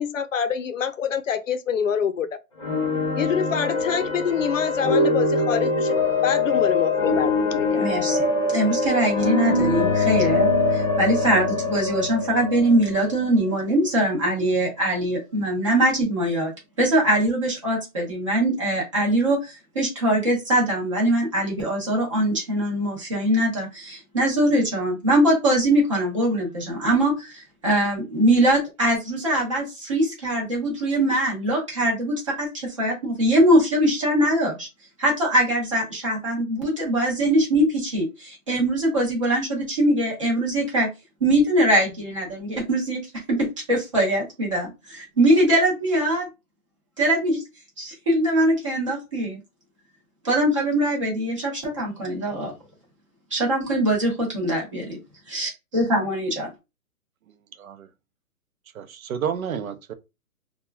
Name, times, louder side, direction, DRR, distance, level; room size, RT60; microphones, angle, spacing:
voice 1, 0.0-2.4 3.2-5.9 6.2-7.9, left 7 dB, 60° left, 0.5 m, -26 dB
sound 1, 2.6-14.2, left 3 dB, 20° left, 0.8 m, -23 dB
voice 2, 7.8-16.5 16.8-34.7 35.0-40.9 41.2-43.0 43.3-46.3 47.0-47.4 47.8-49.4 50.2-52.5 53.3-54.9 55.3-56.5, right 1 dB, 20° right, 0.8 m, -22 dB
voice 3, 58.7-59.9, right 8 dB, 65° right, 0.6 m, -30 dB
2.9 x 2.3 x 2.3 m
hypercardioid pair, 175°, 44 cm